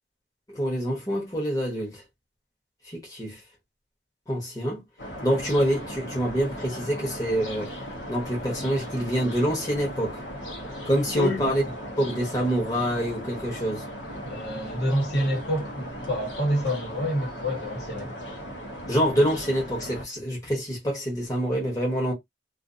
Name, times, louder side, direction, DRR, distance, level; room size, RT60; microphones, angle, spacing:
voice 1, 0.5-2.0 2.9-3.4 4.3-4.8 5.2-7.7 8.1-10.2 10.8-11.6 12.0-13.8 18.9-22.1, equal, 20° left, 1.0 m, -26 dB
sound 1, 5.0-20.1, equal, 85° left, 1.0 m, -37 dB
voice 2, 11.1-11.4 14.2-18.1, equal, 65° left, 1.2 m, -27 dB
2.5 x 2.5 x 2.5 m
head